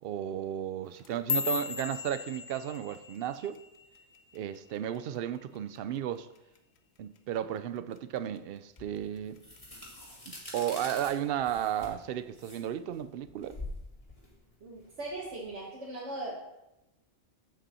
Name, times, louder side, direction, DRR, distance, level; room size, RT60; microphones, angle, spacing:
voice 1, 0.0-3.6 4.3-6.3 7.0-9.4 10.3-13.6, right 10 dB, 65° right, 0.7 m, -34 dB
sound 1, 0.9-5.3 5.6-6.0 6.4-6.8 7.2-7.4 8.0-8.4 8.8-9.6 10.0-10.4 11.2-11.3, left 6 dB, 70° left, 1.0 m, -37 dB
sound 2, 8.8-15.5, left 1 dB, 30° left, 2.3 m, -46 dB
voice 2, 14.6-16.3, right 2 dB, 80° right, 1.7 m, -39 dB
8.0 x 7.5 x 4.3 m
omnidirectional pair, 1.2 m